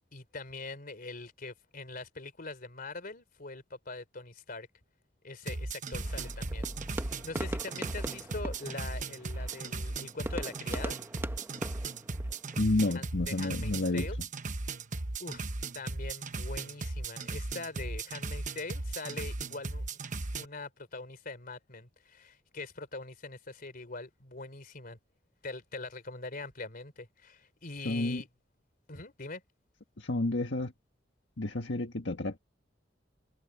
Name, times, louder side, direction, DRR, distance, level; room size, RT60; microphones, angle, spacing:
voice 1, 0.0-4.7 5.2-6.7 7.0-11.0 12.8-14.2 15.2-15.4 15.7-20.0 20.4-25.0 25.4-28.3 28.9-29.4, left 3 dB, 50° left, 3.4 m, -43 dB
sound 1, 5.4-20.5, right 3 dB, 45° right, 1.1 m, -37 dB
sound 2, 5.9-9.9, equal, 65° right, 3.5 m, -47 dB
sound 3, 6.0-12.6, right 1 dB, 15° right, 1.0 m, -42 dB
voice 2, 12.6-14.1 27.8-28.2 30.0-30.7 31.4-32.4, left 2 dB, 80° left, 1.6 m, -30 dB
head